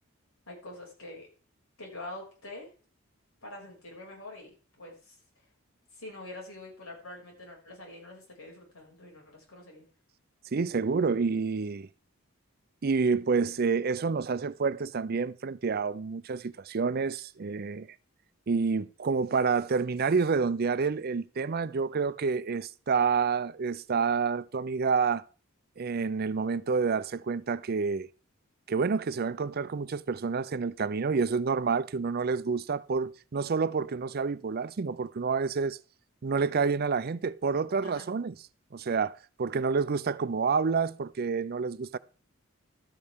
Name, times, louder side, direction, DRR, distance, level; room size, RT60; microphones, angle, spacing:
voice 1, 0.5-1.3 1.8-2.7 3.4-5.2 5.9-9.8 37.8-38.1, left 2 dB, 85° left, 6.2 m, -45 dB
voice 2, 10.5-11.9 12.8-17.9 18.5-25.2 25.8-28.1 28.7-35.8 36.2-38.3 38.7-42.0, right 5 dB, 45° right, 0.5 m, -28 dB
13.0 x 9.5 x 3.7 m
head